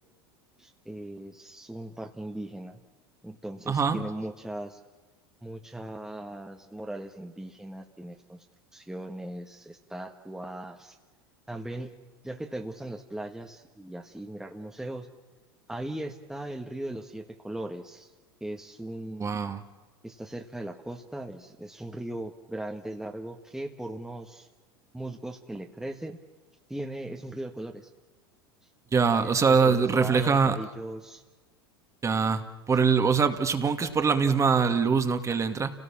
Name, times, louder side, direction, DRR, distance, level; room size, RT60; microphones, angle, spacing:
voice 1, 0.6-2.8 3.2-4.8 5.4-8.4 8.7-11.0 11.5-11.9 12.2-15.1 15.7-18.1 18.4-19.3 20.0-24.5 24.9-26.2 26.7-27.9 29.1-31.2, right 1 dB, 5° right, 2 dB, 1.6 m, -38 dB
voice 2, 3.7-4.0 19.2-19.6 28.9-30.6 32.0-35.7, right 5 dB, 25° right, 8 dB, 2.1 m, -23 dB
30.0 x 18.0 x 7.3 m, 1.3 s
hypercardioid pair, 95°, 13 cm